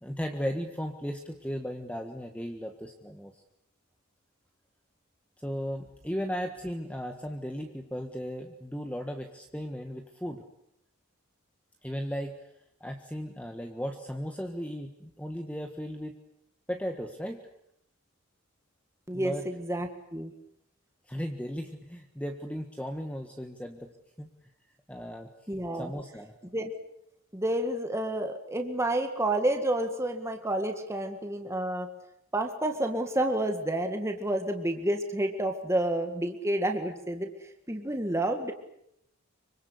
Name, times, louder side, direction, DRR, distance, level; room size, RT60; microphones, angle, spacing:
voice 1, 0.0-3.4 5.4-10.4 11.8-12.5 12.8-16.1 16.7-17.5 19.1-19.4 21.1-23.9 24.2-24.3 24.9-25.3 25.7-26.3, equal, 5° left, 4 dB, 1.5 m, -36 dB
voice 2, 19.1-20.3 25.5-25.9 26.5-26.7 27.3-31.9 32.3-38.5, right 1 dB, 15° right, 5 dB, 1.9 m, -30 dB
26.0 x 25.0 x 8.3 m, 0.76 s
head